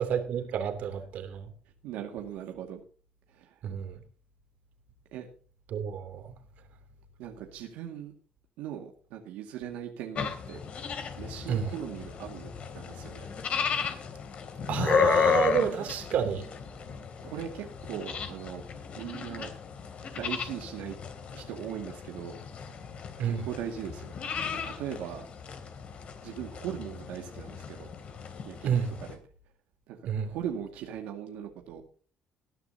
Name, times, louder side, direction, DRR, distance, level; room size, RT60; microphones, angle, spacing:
voice 1, 0.0-1.5 3.6-4.0 5.7-6.3 11.5-11.7 14.7-16.5 23.2-23.5 28.6-29.0 30.0-30.4, right 8 dB, 65° right, 3.0 m, -30 dB
voice 2, 1.8-2.8 3.3-3.6 5.1-5.3 7.2-8.1 8.6-10.6 11.2-13.3 17.2-18.6 19.0-19.5 20.0-21.0 21.3-22.4 23.2-24.1 24.4-25.3 26.2-27.9 28.5-29.2 29.9-31.8, right 9 dB, 90° right, 2.1 m, -39 dB
sound 1, 10.2-29.1, left 6 dB, 50° left, 3.1 m, -34 dB
20.0 x 11.0 x 2.9 m
cardioid pair, 115°, 3 cm